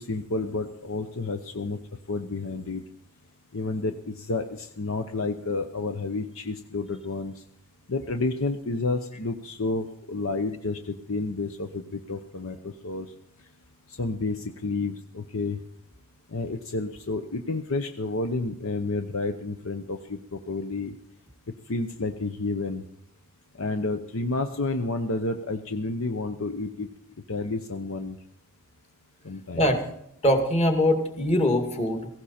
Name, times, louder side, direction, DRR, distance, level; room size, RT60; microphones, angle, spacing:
voice 1, 0.0-1.8 2.1-2.8 3.5-7.3 7.9-12.6 12.8-13.1 14.0-15.6 16.3-20.9 21.7-22.8 23.6-26.9 27.3-28.1 29.2-29.6, left 3 dB, 65° left, 7 dB, 0.9 m, -30 dB
voice 2, 30.2-32.1, left 1 dB, 30° left, 5 dB, 2.3 m, -22 dB
17.0 x 16.0 x 4.3 m, 0.74 s
head